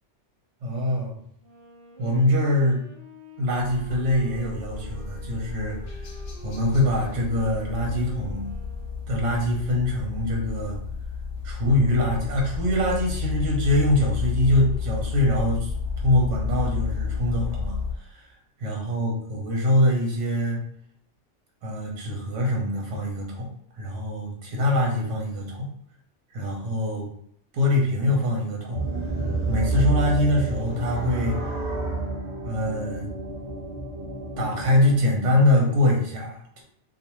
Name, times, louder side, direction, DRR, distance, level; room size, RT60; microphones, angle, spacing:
voice 1, 0.6-1.1 2.0-2.8 3.4-6.1 6.4-8.5 9.1-10.8 11.4-18.3 18.6-20.6 21.6-23.5 23.7-25.7 26.3-27.1 27.5-28.8 29.5-31.4 32.4-33.1 34.4-36.6, left 1 dB, 85° right, -1 dB, 1.0 m, -24 dB
Wind instrument woodwind instrument, 1.4-9.9, right 2 dB, 20° left, 0.6 m, -48 dB
sound 1, 3.6-17.9, left 5 dB, 65° left, 0.7 m, -31 dB
sound 2, 28.7-35.0, right 2 dB, 25° right, 0.8 m, -29 dB
2.4 x 2.3 x 2.9 m, 0.66 s
omnidirectional pair, 1.2 m